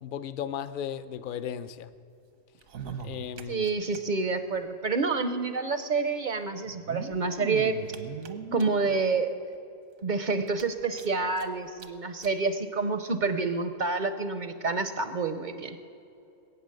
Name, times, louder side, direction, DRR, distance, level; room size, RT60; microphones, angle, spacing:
voice 1, 0.0-1.9 3.0-3.7, left 9 dB, 60° left, 13 dB, 0.5 m, -35 dB
sound 1, 2.5-4.0 4.3-4.4 4.5-4.6 5.7-5.8 6.6-8.9 9.5-9.6 10.0-10.1 10.5-11.4 11.8-11.9 12.2-12.3 13.1-13.2, right 6 dB, 85° right, 1.4 m, -39 dB
voice 2, 3.5-7.8 8.5-9.4 10.0-15.8, right 4 dB, 50° right, 10 dB, 0.6 m, -28 dB
21.0 x 8.9 x 6.5 m, 2.7 s
omnidirectional pair, 1.4 m